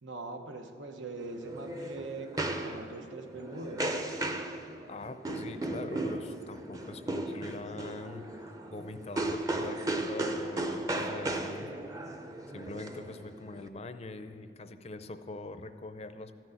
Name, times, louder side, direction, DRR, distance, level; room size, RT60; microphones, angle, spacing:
voice 1, 0.0-4.0, right 3 dB, 90° right, 5 dB, 1.0 m, -42 dB
sound 1, 1.2-13.7, right 2 dB, 20° right, 0.6 m, -36 dB
voice 2, 4.8-11.7 12.5-16.3, left 2 dB, 35° left, 10 dB, 0.5 m, -43 dB
14.0 x 6.2 x 9.3 m, 2.6 s
head